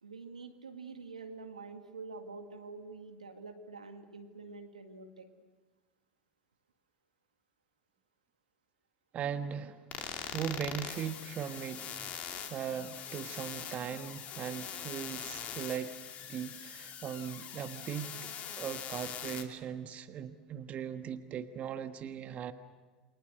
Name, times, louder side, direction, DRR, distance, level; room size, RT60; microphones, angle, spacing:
voice 1, 0.0-5.3, right 4 dB, 90° right, 6 dB, 2.0 m, -47 dB
voice 2, 9.1-11.9 12.5-16.0 16.2-22.5, right 8 dB, 40° right, 9 dB, 1.3 m, -39 dB
sound 1, 9.9-19.4, left 9 dB, 40° left, 2.7 m, -42 dB
29.0 x 24.0 x 6.5 m, 1.4 s
hypercardioid pair, 85°, 4 cm